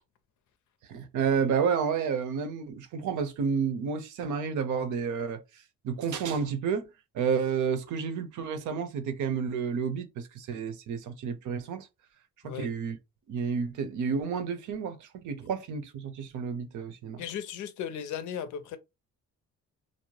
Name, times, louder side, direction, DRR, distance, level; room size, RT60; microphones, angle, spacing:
voice 1, 0.9-11.9 12.4-13.0 13.3-17.2, right 6 dB, 75° right, 0.7 m, -30 dB
voice 2, 17.2-18.8, left 8 dB, 80° left, 0.6 m, -36 dB
2.7 x 2.0 x 3.1 m
cardioid pair, 90°, 30 cm